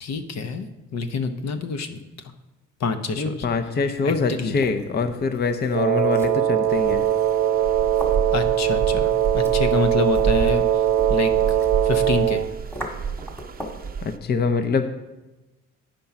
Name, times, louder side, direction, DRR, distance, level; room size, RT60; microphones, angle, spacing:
voice 1, 0.0-2.0 2.8-3.5 4.0-4.6 8.3-10.8 11.1-11.3 11.8-12.4, left 4 dB, 60° left, 8 dB, 0.8 m, -27 dB
voice 2, 3.2-7.1 14.0-14.9, left 4 dB, 35° left, 8 dB, 0.6 m, -24 dB
sound 1, 3.7-13.9, equal, 10° left, 1.6 m, -41 dB
Wind instrument woodwind instrument, 5.7-12.5, right 10 dB, 75° right, 0.6 m, -21 dB
sound 2, 6.7-14.2, right 6 dB, 30° right, 0.6 m, -30 dB
8.8 x 5.3 x 5.8 m, 1.1 s
cardioid pair, 90°, 30 cm